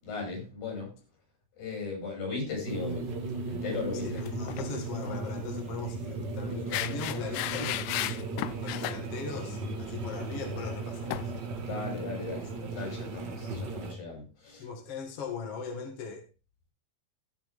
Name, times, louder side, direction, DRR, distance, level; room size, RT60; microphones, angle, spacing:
voice 1, 0.0-0.9 1.6-3.1 3.5-4.2 11.6-14.7, left 4 dB, 65° left, 0 dB, 7.9 m, -37 dB
sound 1, 2.6-13.9, right 3 dB, 45° right, 1.5 m, -36 dB
voice 2, 3.9-8.2 8.6-11.3 14.5-16.2, left 5 dB, 45° left, 3 dB, 2.5 m, -39 dB
sound 2, 4.2-4.7 5.0-5.2 6.7-9.0 11.1-11.3, left 14 dB, 90° left, 1.7 m, -34 dB
18.0 x 6.6 x 3.6 m, 0.32 s
omnidirectional pair, 4.4 m